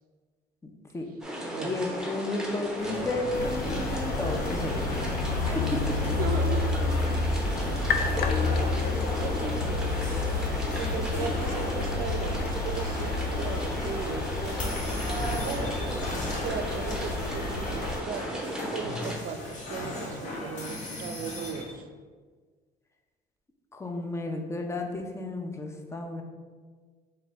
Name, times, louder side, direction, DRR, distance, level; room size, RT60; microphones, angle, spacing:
voice 1, 0.6-1.0 1.6-5.2 5.5-6.0 23.7-26.2, left 2 dB, 15° left, 4 dB, 0.6 m, -33 dB
Old Water Wheel, 1.2-19.1, right 1 dB, 5° right, 1.0 m, -36 dB
voice 2, 1.4-1.8 6.2-7.2 7.7-10.2 10.7-15.0 15.5-15.8 16.4-21.9, right 6 dB, 55° right, 7 dB, 0.5 m, -38 dB
sound 1, 2.8-21.7, left 1 dB, 50° left, 1.2 m, -37 dB
sound 2, 3.3-18.0, left 4 dB, 65° left, 0.5 m, -30 dB
4.0 x 3.3 x 4.0 m, 1.5 s
cardioid pair, 110°, 17 cm